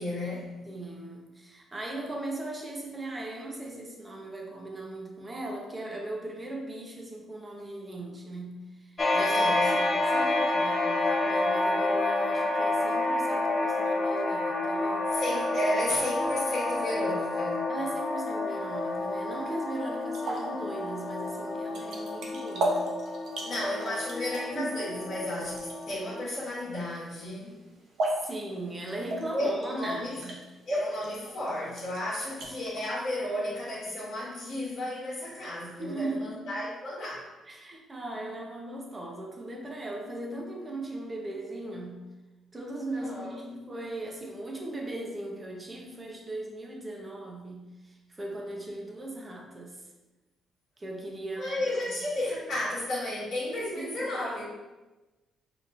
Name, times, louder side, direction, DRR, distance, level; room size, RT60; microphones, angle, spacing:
voice 1, 0.0-0.6 9.1-9.8 15.1-17.7 23.4-27.6 29.3-30.2 30.7-37.3 43.0-43.4 51.4-54.4, left 1 dB, 55° left, -11 dB, 1.3 m, -33 dB
voice 2, 0.7-9.3 9.9-15.2 17.7-23.0 24.5-24.7 28.2-30.4 35.8-36.5 37.5-42.1 42.5-49.8 50.8-51.8 53.7-54.1, right 2 dB, 25° right, 1 dB, 0.9 m, -38 dB
sound 1, 9.0-26.2, left 2 dB, 35° left, 0.5 m, -29 dB
sound 2, 18.5-32.9, right 1 dB, 70° right, 0.8 m, -38 dB
5.1 x 2.9 x 2.5 m, 1.1 s
cardioid pair, 90°, 0 cm